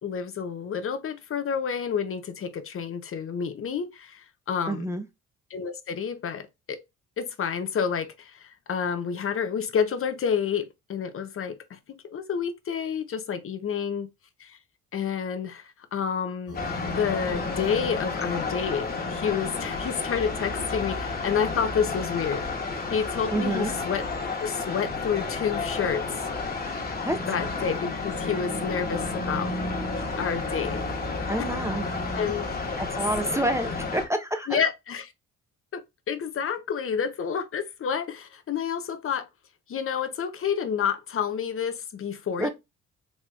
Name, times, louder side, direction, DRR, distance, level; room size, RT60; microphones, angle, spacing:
voice 1, 0.0-4.9 5.5-6.8 7.2-14.1 14.4-14.6 14.9-22.5 22.9-24.1 24.4-26.2 27.3-29.5 30.2-30.8 32.1-32.8 34.5-35.1 35.7-39.3 39.7-42.5, left 7 dB, 45° left, 0.7 m, -29 dB
voice 2, 4.7-5.0 23.3-23.7 27.0-27.2 31.3-31.8 32.8-34.7 42.4-42.5, right 1 dB, 10° right, 0.6 m, -28 dB
sound 1, 16.5-25.2 26.2-34.0, left 1 dB, 80° left, 1.6 m, -37 dB
sound 2, 16.5-34.1, left 4 dB, 30° left, 1.3 m, -32 dB
4.2 x 3.0 x 2.3 m
cardioid pair, 90°, 30 cm